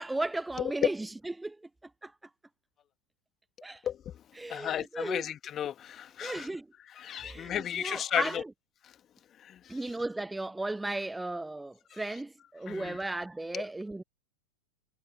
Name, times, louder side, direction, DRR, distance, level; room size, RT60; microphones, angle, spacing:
voice 1, 0.0-1.6 2.0-2.1 3.6-3.8 4.4-5.2 6.2-6.7 7.2-8.5 9.7-14.0, right 2 dB, 5° right, 0.5 m, -35 dB
voice 2, 4.5-6.5 7.0-8.4 8.8-8.9 9.4-9.8 11.9-12.0 12.7-13.0 13.5-13.6, left 10 dB, 25° left, 1.9 m, -34 dB
figure-of-eight pair, 90°, 0 cm